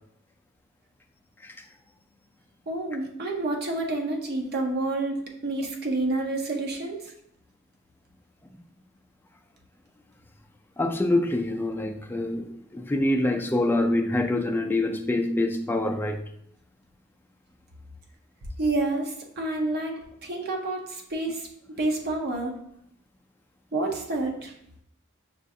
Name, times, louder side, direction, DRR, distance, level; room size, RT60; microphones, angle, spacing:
voice 1, 2.7-7.0 18.6-19.9 20.2-21.5 21.8-22.5 23.7-24.5, right 2 dB, 50° right, 0.6 m, -28 dB
voice 2, 10.8-16.2, left 1 dB, 10° left, 0.3 m, -25 dB
6.0 x 2.4 x 2.6 m
head